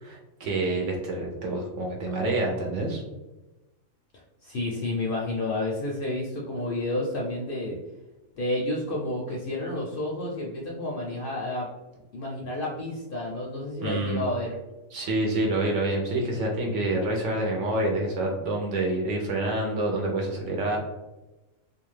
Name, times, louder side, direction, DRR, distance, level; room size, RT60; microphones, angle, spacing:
voice 1, 0.0-3.0 13.8-14.2 14.9-20.8, right 2 dB, 70° right, 0 dB, 0.9 m, -27 dB
voice 2, 4.1-7.8 8.4-11.7 12.1-14.5, left 2 dB, 65° left, -3 dB, 0.6 m, -30 dB
2.4 x 2.3 x 3.1 m, 1.0 s
omnidirectional pair, 1.3 m